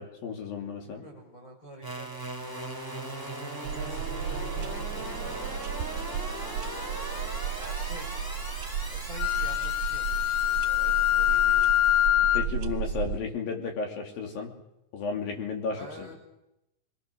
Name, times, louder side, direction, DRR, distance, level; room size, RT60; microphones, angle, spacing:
voice 1, 0.0-1.1 12.3-14.5 14.9-16.1, left 5 dB, 80° left, 1 dB, 4.7 m, -33 dB
voice 2, 0.8-3.1 3.7-8.1 8.9-11.8 15.7-16.1, equal, 25° left, 0 dB, 5.0 m, -48 dB
sound 1, 1.8-12.1, right 1 dB, 5° left, 2.8 m, -39 dB
sound 2, 3.6-13.2, right 8 dB, 70° right, 2.2 m, -34 dB
Wind instrument woodwind instrument, 9.2-12.5, left 13 dB, 55° left, 1.8 m, -24 dB
27.0 x 22.0 x 6.5 m, 0.88 s
omnidirectional pair, 4.1 m